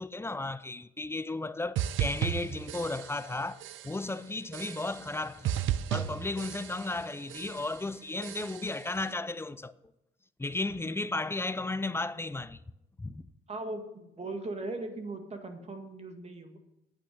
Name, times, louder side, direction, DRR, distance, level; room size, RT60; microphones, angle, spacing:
voice 1, 0.0-5.5 5.9-9.7 10.4-12.6 13.0-13.2, left 2 dB, 10° left, 0.5 m, -34 dB
sound 1, 1.8-3.3 3.6-4.1 4.5-5.2 5.4-7.0 7.3-7.8 8.2-8.9, right 11 dB, 85° right, 0.6 m, -35 dB
voice 2, 13.5-16.6, right 2 dB, 30° right, 1.9 m, -39 dB
8.8 x 8.7 x 6.3 m
cardioid pair, 90°, 20 cm